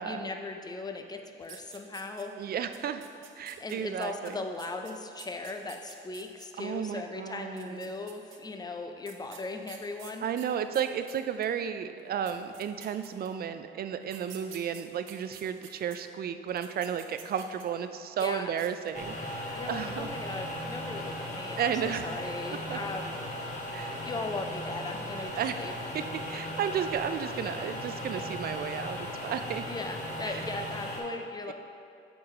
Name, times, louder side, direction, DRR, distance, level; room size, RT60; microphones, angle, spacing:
voice 1, 0.0-2.3 3.6-10.3 18.2-18.5 19.5-23.2 24.0-25.7 29.7-31.5, left 3 dB, 20° left, 5 dB, 0.5 m, -38 dB
sound 1, 1.4-2.4 2.7-6.5 7.5-8.4 9.0-11.5 12.0-12.1 12.3-13.5 14.0-16.0 16.5-17.8 18.1-18.3 18.6-19.0, right 9 dB, 85° right, 0.7 m, -50 dB
voice 2, 2.4-3.0 3.4-4.4 6.6-7.9 10.2-20.1 21.6-22.1 22.7-22.8 23.7-24.0 25.4-25.6 25.9-26.0 26.3-29.6 30.2-30.4, right 8 dB, 50° right, 10 dB, 0.4 m, -33 dB
sound 2, 18.9-31.0, equal, 35° left, 1.3 m, -37 dB
7.0 x 3.9 x 4.8 m, 2.5 s
cardioid pair, 90°, 20 cm